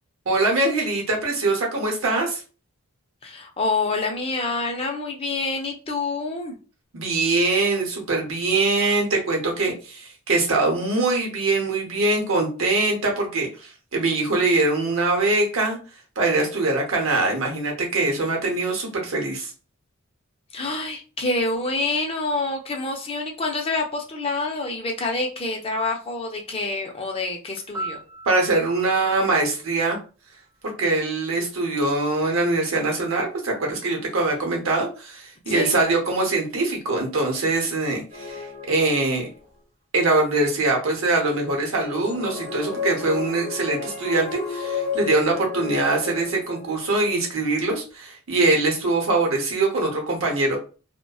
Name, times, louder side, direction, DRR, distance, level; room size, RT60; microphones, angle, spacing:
voice 1, 0.3-2.4 6.9-15.8 16.2-19.5 28.3-30.0 30.8-39.3 39.9-50.6, right 2 dB, 75° right, 1 dB, 0.9 m, -23 dB
voice 2, 3.2-6.6 20.5-28.0 35.5-35.7, left 3 dB, 25° left, 2 dB, 0.5 m, -27 dB
Piano, 27.7-30.7 38.8-39.0, right 2 dB, 10° right, 1.0 m, -39 dB
sound 1, 38.1-39.4 41.7-47.0, left 6 dB, 40° right, 1.0 m, -32 dB
2.6 x 2.1 x 2.3 m, 0.35 s
head